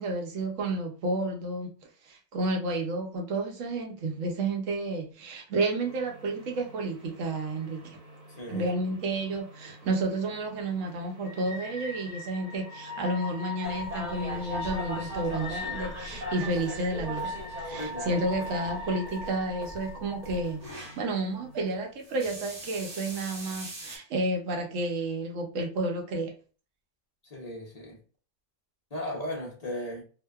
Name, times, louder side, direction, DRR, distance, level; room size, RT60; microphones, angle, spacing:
voice 1, 0.0-1.7 2.0-8.0 8.5-17.3 17.6-26.3, right 2 dB, 65° right, 0.9 m, -31 dB
sound 1, 5.8-21.8, left 1 dB, 85° right, 1.3 m, -42 dB
sound 2, 13.6-21.0 22.0-24.0, equal, 40° right, 0.6 m, -40 dB
voice 2, 17.7-18.2 27.3-28.0 28.9-30.0, left 1 dB, 65° left, 0.4 m, -36 dB
2.7 x 2.0 x 2.2 m
omnidirectional pair, 1.6 m